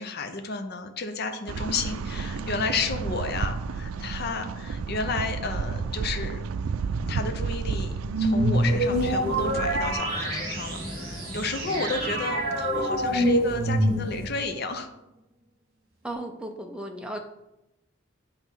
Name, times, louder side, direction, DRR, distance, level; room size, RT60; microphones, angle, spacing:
voice 1, 0.0-6.4 7.1-14.9, left 3 dB, 50° left, 6 dB, 0.6 m, -32 dB
sound 1, 1.5-9.9, right 5 dB, 85° right, 0.4 m, -32 dB
sound 2, 8.1-14.4, right 1 dB, 45° right, 2.1 m, -26 dB
sound 3, 8.5-14.3, equal, 15° left, 2.0 m, -39 dB
voice 2, 12.7-13.1 16.0-17.2, right 1 dB, 5° right, 3 dB, 0.6 m, -36 dB
8.2 x 3.4 x 5.5 m, 0.91 s
head